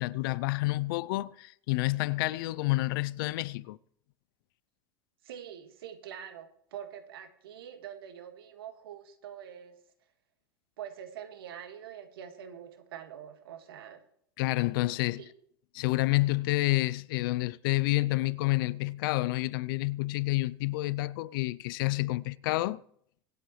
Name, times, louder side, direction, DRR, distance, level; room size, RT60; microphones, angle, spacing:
voice 1, 0.0-3.8 14.4-15.2 15.7-22.8, left 20 dB, 65° left, 0.5 m, -29 dB
voice 2, 5.2-9.7 10.8-14.0 15.2-15.3, right 9 dB, 75° right, 1.8 m, -45 dB
24.0 x 8.2 x 3.2 m
hypercardioid pair, 90°, 12 cm